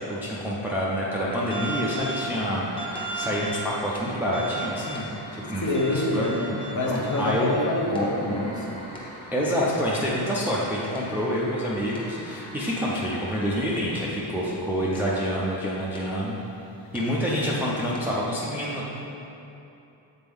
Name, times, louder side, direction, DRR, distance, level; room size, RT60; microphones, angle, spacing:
voice 1, 0.1-5.6 5.9-6.3 6.9-7.6 9.3-16.3 16.9-18.9, equal, 5° right, -6 dB, 0.4 m, -27 dB
sound 1, 1.3-14.6 15.0-15.2 16.0-16.1 16.9-17.0 18.0-18.1, right 1 dB, 10° left, 0.8 m, -38 dB
voice 2, 5.6-8.8, left 1 dB, 40° left, -2 dB, 0.9 m, -26 dB
7.7 x 4.3 x 3.5 m, 2.9 s
wide cardioid pair, 180°, 48 cm